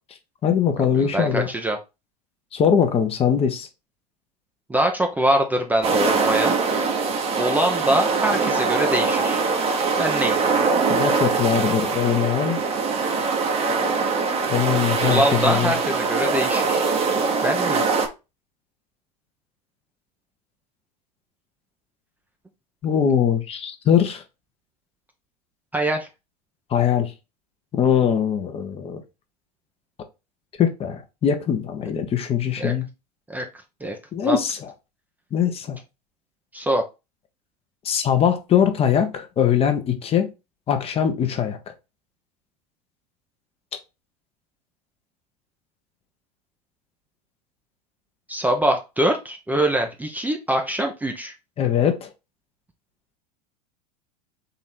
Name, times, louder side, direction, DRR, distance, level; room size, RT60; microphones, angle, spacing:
voice 1, 0.4-1.5 2.5-3.7 10.9-12.6 14.5-15.7 22.8-24.2 26.7-27.1 27.7-29.0 30.6-32.9 34.1-34.7 35.3-35.8 37.8-40.3 40.7-41.6 51.6-52.1, left 8 dB, 25° left, 0.9 m, -21 dB
voice 2, 1.0-1.8 4.7-6.6 7.4-9.4 9.9-10.4 15.0-16.8 17.4-17.8 25.7-26.1 32.6-32.7 33.3-33.4 33.8-34.0 34.2-34.4 36.5-36.8 48.3-51.3, right 1 dB, 10° right, 0.6 m, -23 dB
sound 1, 5.8-18.1, right 4 dB, 30° right, 1.0 m, -22 dB
3.9 x 3.1 x 4.4 m
figure-of-eight pair, 85°, 21 cm